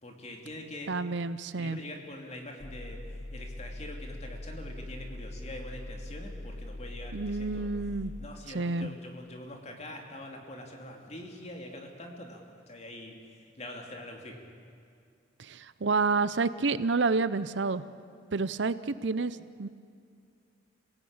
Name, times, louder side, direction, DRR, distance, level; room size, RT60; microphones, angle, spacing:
voice 1, 0.0-1.0 1.6-3.0 3.3-7.7 8.2-14.5, left 1 dB, 35° left, 2 dB, 2.9 m, -44 dB
voice 2, 0.9-1.8 7.1-8.1 8.5-8.9 15.4-17.8 18.3-19.7, right 4 dB, 70° right, 15 dB, 0.7 m, -29 dB
sound 1, 2.6-8.3, left 1 dB, 60° left, 1.3 m, -41 dB
27.5 x 17.5 x 8.8 m, 2.4 s
head